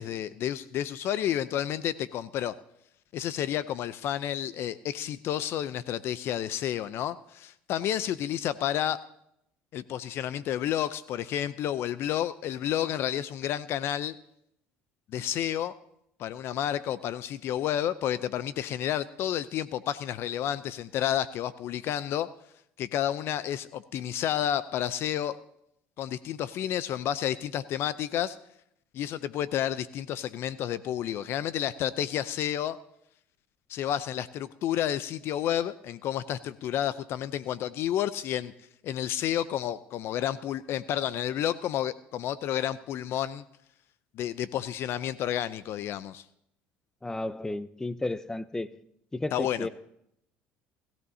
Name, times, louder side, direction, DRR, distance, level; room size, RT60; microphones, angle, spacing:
voice 1, 0.0-2.6 3.1-9.0 9.7-14.2 15.1-15.7 16.2-22.3 22.8-25.4 26.0-28.4 28.9-32.8 33.7-38.5 38.8-43.4 44.1-46.2 49.3-49.7, left 11 dB, 60° left, 15 dB, 0.6 m, -30 dB
voice 2, 47.0-48.7 49.1-49.7, left 2 dB, 10° left, 15 dB, 0.7 m, -33 dB
20.0 x 15.0 x 2.8 m, 0.75 s
supercardioid pair, 85°, 5 cm